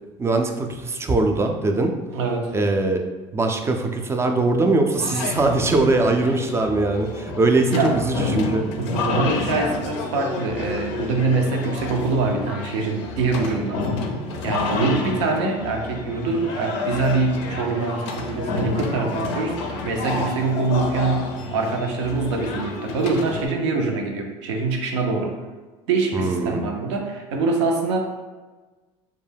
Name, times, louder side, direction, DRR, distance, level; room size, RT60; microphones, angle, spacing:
voice 1, 0.2-1.9 2.5-3.0 3.3-8.6 13.5-13.6 26.1-26.6, right 2 dB, 20° right, 5 dB, 0.3 m, -21 dB
voice 2, 2.1-2.5 7.7-8.4 8.8-13.9 14.4-25.4 25.9-28.1, right 3 dB, 85° right, 2 dB, 0.5 m, -24 dB
sound 1, 5.0-23.5, left 3 dB, 80° left, 0.4 m, -29 dB
2.2 x 2.1 x 3.3 m, 1.3 s
supercardioid pair, 85°, 15 cm